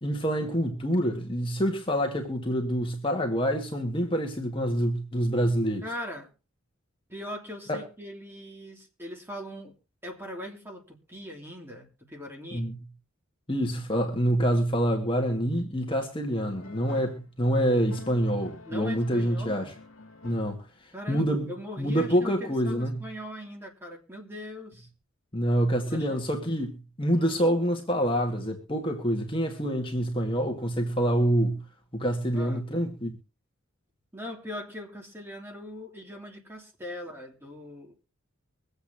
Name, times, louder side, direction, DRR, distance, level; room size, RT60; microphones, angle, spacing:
voice 1, 0.0-5.8 7.7-7.8 12.5-12.8 13.5-19.7 20.2-20.6 21.1-21.5 21.8-23.0 25.3-31.6 31.9-33.2, equal, 25° left, 1.9 m, -26 dB
voice 2, 5.8-6.3 7.1-9.7 10.0-12.7 18.7-19.7 20.9-24.9 25.8-26.2 27.1-27.6 32.3-32.6 34.1-38.0, equal, 10° right, 3.0 m, -40 dB
sound 1, 16.6-17.3 17.8-20.8, left 3 dB, 85° left, 1.8 m, -48 dB
24.0 x 8.2 x 2.8 m
head